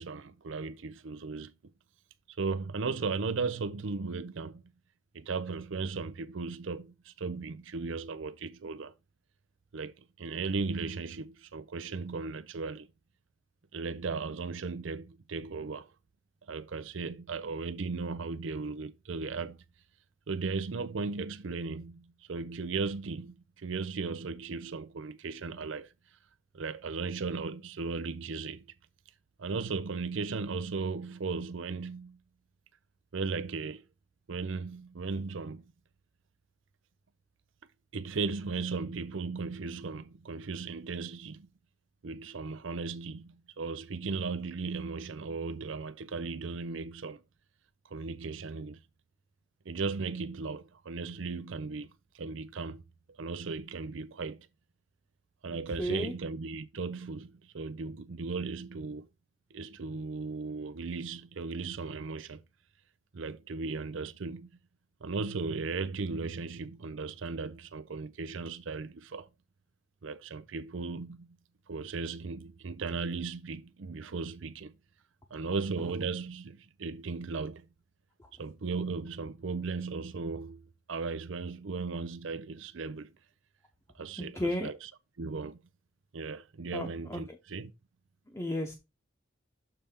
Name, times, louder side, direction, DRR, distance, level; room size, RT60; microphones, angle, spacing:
voice 1, 0.0-1.5 2.4-4.6 5.1-8.9 9.7-12.9 13.7-15.9 16.5-19.6 20.3-25.9 26.5-28.7 29.4-32.2 33.1-33.8 34.3-35.7 37.9-41.5 42.0-47.2 47.9-48.8 49.7-51.9 52.1-52.8 53.1-54.5 55.4-59.1 59.5-62.4 63.1-64.5 65.0-69.3 70.0-71.4 71.7-74.7 75.3-77.7 78.4-80.6 80.9-83.1 84.0-84.9 85.2-85.6 86.1-87.7, right 4 dB, 75° right, 0.5 m, -36 dB
voice 2, 55.8-56.1 78.2-78.3 84.2-84.7 86.7-87.4 88.3-88.7, left 1 dB, 15° left, 0.8 m, -34 dB
6.8 x 3.4 x 5.7 m
head